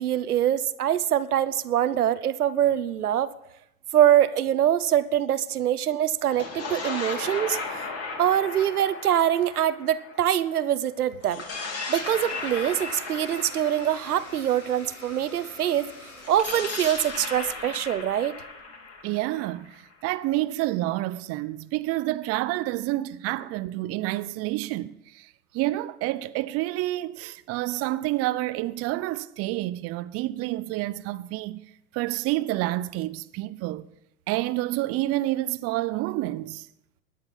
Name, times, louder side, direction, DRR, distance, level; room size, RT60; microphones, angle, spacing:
voice 1, 0.0-3.3 3.9-7.8 8.2-11.4 11.9-15.9 16.3-18.4, right 11 dB, 85° right, 0.9 m, -24 dB
sound 1, 6.2-10.6 11.2-15.2 16.2-20.0, left 4 dB, 35° left, 3.6 m, -36 dB
Domestic sounds home sounds, 11.9-16.9, left 2 dB, 80° left, 7.8 m, -46 dB
voice 2, 19.0-33.9 34.3-36.7, right 17 dB, 35° right, 0.6 m, -29 dB
16.5 x 10.5 x 5.5 m
hypercardioid pair, 95°, 44 cm